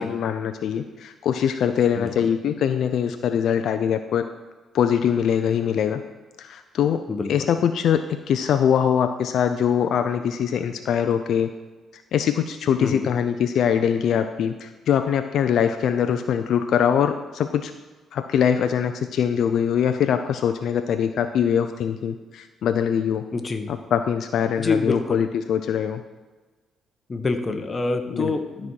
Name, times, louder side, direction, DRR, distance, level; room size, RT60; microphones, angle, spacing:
voice 1, 0.0-4.3 4.7-6.0 6.4-7.0 7.3-11.5 11.9-17.7 18.1-23.3 23.7-26.0 28.1-28.3, left 8 dB, 70° left, 8 dB, 0.5 m, -23 dB
voice 2, 23.3-23.7 24.6-25.2 27.1-28.7, left 3 dB, 30° left, 7 dB, 1.0 m, -26 dB
12.5 x 4.3 x 6.3 m, 1.3 s
cardioid pair, 90°, 0 cm